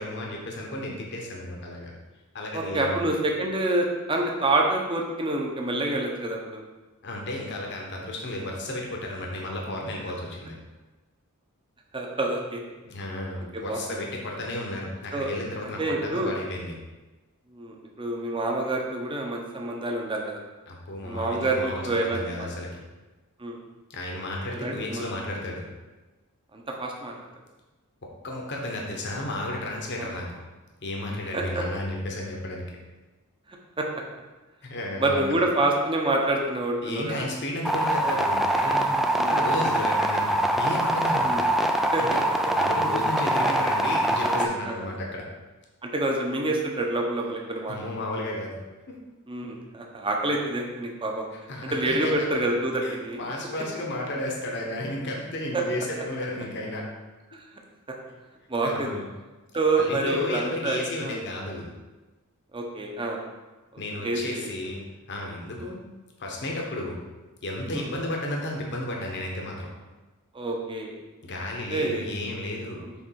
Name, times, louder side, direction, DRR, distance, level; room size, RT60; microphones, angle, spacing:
voice 1, 0.0-1.9 2.3-3.0 7.0-10.5 12.9-16.7 20.7-22.8 23.9-25.6 28.2-30.3 30.8-32.7 34.6-35.3 36.8-41.3 42.0-42.2 42.5-45.3 47.7-48.6 48.9-49.0 51.5-52.5 52.8-56.9 58.6-59.1 59.7-61.7 63.8-64.8 65.1-65.8 66.2-67.0 67.4-69.7 71.2-72.8, left 1 dB, 55° left, -1 dB, 1.1 m, -33 dB
voice 2, 2.5-6.6 11.9-12.6 13.5-13.8 15.1-15.3 15.8-16.3 17.5-20.4 21.0-22.5 23.4-23.6 24.5-25.0 26.5-27.1 29.9-30.1 31.3-31.6 33.5-33.9 35.0-37.3 39.2-39.4 41.2-41.4 41.9-42.0 44.2-44.9 45.8-47.8 49.3-51.3 51.6-53.3 55.5-55.6 58.5-58.9 59.5-61.2 62.5-63.2 64.0-64.5 65.6-65.7 67.7-67.9 70.3-70.9 71.7-72.2 72.8-72.9, right 2 dB, 25° right, 0 dB, 0.8 m, -27 dB
sound 1, 37.6-44.5, right 1 dB, ahead, 0.3 m, -24 dB
7.1 x 3.3 x 4.6 m, 1.2 s
head